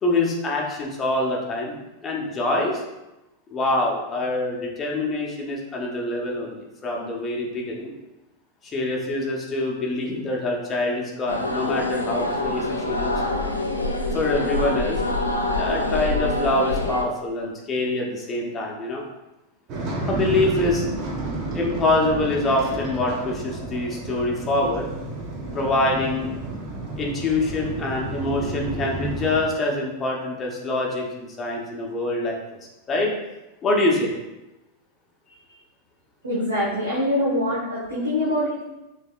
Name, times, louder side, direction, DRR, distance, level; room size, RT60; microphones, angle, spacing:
voice 1, 0.0-2.8 3.5-7.9 8.6-13.1 14.1-15.0 15.5-19.0 20.1-20.9 21.5-24.9 25.5-26.3 27.0-32.4 32.9-33.1 33.6-34.1 35.3-35.4, left 2 dB, 20° left, -1 dB, 1.0 m, -25 dB
sound 1, 11.3-17.0, left 2 dB, 85° left, 0.5 m, -25 dB
sound 2, 19.7-29.4, right 2 dB, 35° right, 0.9 m, -31 dB
voice 2, 36.2-38.6, left 1 dB, 75° right, -9 dB, 1.2 m, -24 dB
6.4 x 3.4 x 2.5 m, 0.98 s
figure-of-eight pair, 90°, 0 cm